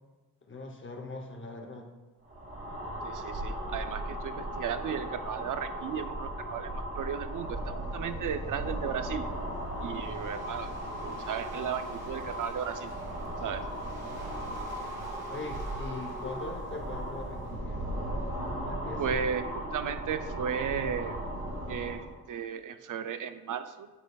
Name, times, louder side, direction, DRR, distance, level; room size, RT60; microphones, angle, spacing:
voice 1, 0.4-1.9 10.7-10.8 11.0-11.2 15.3-17.8 18.6-19.2, left 2 dB, 30° left, 3 dB, 0.8 m, -41 dB
sound 1, 2.2-22.1, right 1 dB, 35° right, 2.1 m, -37 dB
voice 2, 3.0-9.3 9.8-10.7 11.0-12.9 13.4-13.7 19.0-21.2 21.7-23.9, right 7 dB, 55° right, 10 dB, 0.5 m, -35 dB
Waves surf, 9.2-17.4, right 1 dB, 75° right, 1.9 m, -52 dB
9.6 x 7.2 x 2.3 m, 1.2 s
wide cardioid pair, 175°, 37 cm